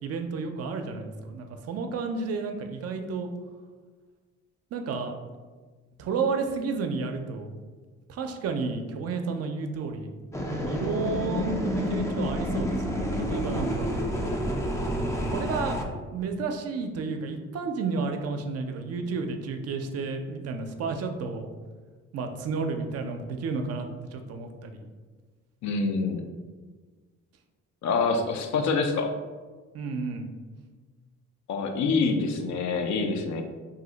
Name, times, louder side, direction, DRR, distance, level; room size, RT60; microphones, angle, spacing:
voice 1, 0.0-3.3 4.7-5.2 6.0-7.5 8.1-10.1 10.7-13.9 15.2-15.8 16.1-21.5 22.1-24.9 29.7-30.3, right 4 dB, 55° right, 5 dB, 0.4 m, -31 dB
sound 1, 10.3-15.8, equal, 10° left, 0.3 m, -29 dB
voice 2, 25.6-26.2 27.8-29.1 31.5-33.4, left 4 dB, 70° left, 5 dB, 0.5 m, -26 dB
2.6 x 2.0 x 3.8 m, 1.4 s
cardioid pair, 90°, 30 cm